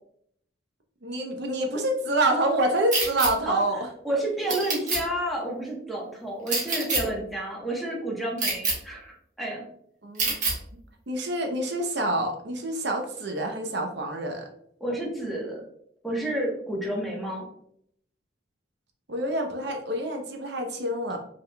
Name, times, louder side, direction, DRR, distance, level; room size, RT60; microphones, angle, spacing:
voice 1, 1.0-3.8 10.0-10.4 11.1-14.5 19.1-21.2, right 1 dB, 60° right, 3 dB, 0.8 m, -27 dB
sound 1, 2.9-3.3 4.5-5.0 6.5-7.0 8.4-8.7 10.2-10.5, right 3 dB, 40° right, 1.4 m, -25 dB
voice 2, 4.0-9.6 14.8-15.6 16.0-17.4, right 1 dB, ahead, -3 dB, 1.1 m, -30 dB
5.5 x 3.6 x 2.3 m, 0.69 s
head